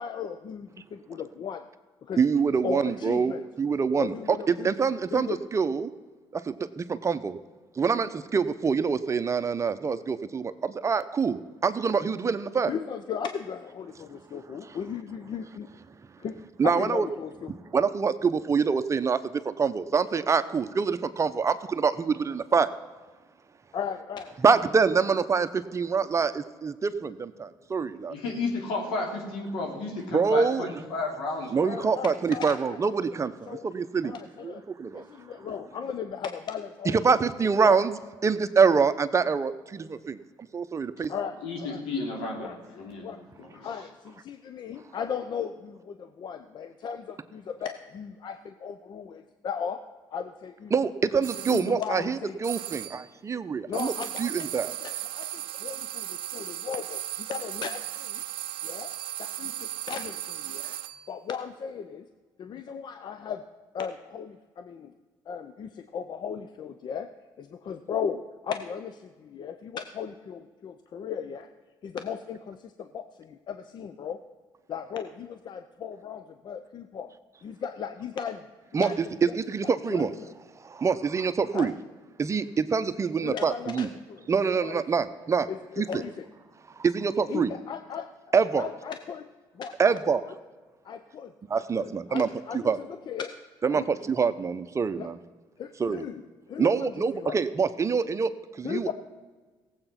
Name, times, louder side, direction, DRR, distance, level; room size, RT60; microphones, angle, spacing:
voice 1, 0.0-1.7 2.0-2.2 2.6-3.4 4.0-4.7 5.1-5.4 12.7-15.7 16.2-17.5 23.7-24.6 31.6-33.7 34.0-34.6 34.9-37.0 37.6-37.8 41.1-41.8 42.4-43.2 43.6-49.8 50.1-50.7 51.4-52.4 53.7-54.5 54.8-58.2 58.6-58.9 59.2-60.8 61.1-62.1 62.4-63.4 63.7-64.9 65.3-67.1 67.4-71.5 71.8-74.2 74.7-77.1 77.4-78.5 78.7-79.4 79.6-80.3 81.5-81.7 83.2-84.3 84.6-84.8 85.5-86.3 87.3-88.1 88.5-89.3 89.5-90.0 90.2-90.3 90.8-93.3 93.7-93.9 94.9-95.1 95.6-96.2 96.5-97.4 98.6-98.9, left 7 dB, 55° left, 9 dB, 0.7 m, -36 dB
voice 2, 2.2-5.9 6.3-7.4 7.8-12.7 16.6-17.1 17.7-19.2 19.4-22.7 24.4-28.1 30.1-30.7 31.5-34.2 34.4-35.0 36.9-38.0 38.2-40.2 40.5-41.1 50.7-53.9 54.2-54.7 78.7-78.9 79.3-80.1 80.6-81.7 82.2-83.9 84.3-85.5 85.8-85.9 86.8-87.5 88.3-88.7 89.8-90.2 91.5-92.3 92.5-92.8 93.6-95.2 95.8-96.1 96.6-98.9, right 5 dB, 35° right, 11 dB, 0.8 m, -25 dB
voice 3, 28.1-31.5 41.4-43.7, left 3 dB, 85° left, 1 dB, 3.1 m, -32 dB
sound 1, 51.2-51.7 52.4-53.1 53.7-61.1, right 14 dB, 80° right, 0.7 m, -36 dB
17.0 x 8.0 x 5.9 m, 1.3 s
supercardioid pair, 80°, 9 cm